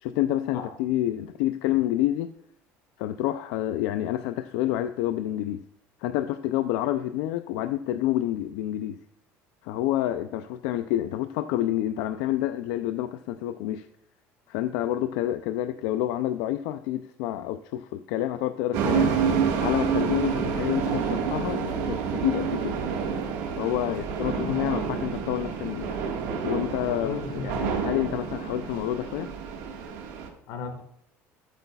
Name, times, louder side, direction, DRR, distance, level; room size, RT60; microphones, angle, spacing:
voice 1, 0.0-2.3 3.0-5.6 6.0-9.0 9.6-13.9 14.5-19.1 19.6-22.8 23.6-26.0 26.4-29.3, left 13 dB, 85° left, 10 dB, 0.4 m, -28 dB
sound 1, 18.7-30.3, right 6 dB, 70° right, 1.6 m, -28 dB
voice 2, 23.9-24.6 25.0-25.1 26.8-27.7 30.5-30.8, left 5 dB, 65° left, 6 dB, 1.6 m, -36 dB
13.0 x 8.1 x 2.3 m, 0.74 s
cardioid pair, 160°, 6 cm